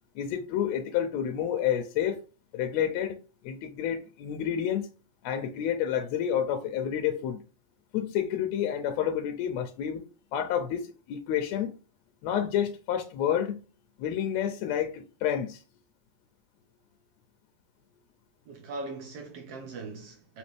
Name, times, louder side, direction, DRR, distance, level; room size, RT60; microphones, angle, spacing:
voice 1, 0.2-2.2 2.5-3.2 3.4-4.8 5.2-7.4 7.9-10.0 10.3-11.7 12.2-13.5 14.0-15.6, left 9 dB, 80° left, 1.7 m, -29 dB
voice 2, 18.5-20.4, right 3 dB, 75° right, 1.4 m, -40 dB
5.2 x 2.9 x 3.2 m
omnidirectional pair, 3.3 m